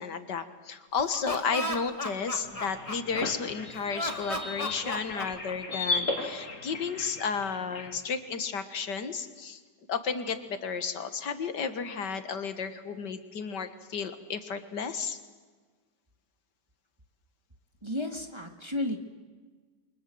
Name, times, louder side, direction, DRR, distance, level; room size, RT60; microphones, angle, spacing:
voice 1, 0.0-9.6 9.9-15.2, left 5 dB, 75° left, 10 dB, 2.2 m, -33 dB
Laughter, 1.0-3.5 3.9-6.0, left 1 dB, 20° left, 2.2 m, -35 dB
sound 1, 2.4-7.9, left 3 dB, 45° left, 3.1 m, -36 dB
voice 2, 17.8-19.0, left 1 dB, 15° right, 5 dB, 1.8 m, -32 dB
29.5 x 24.5 x 7.8 m, 1.4 s
omnidirectional pair, 1.9 m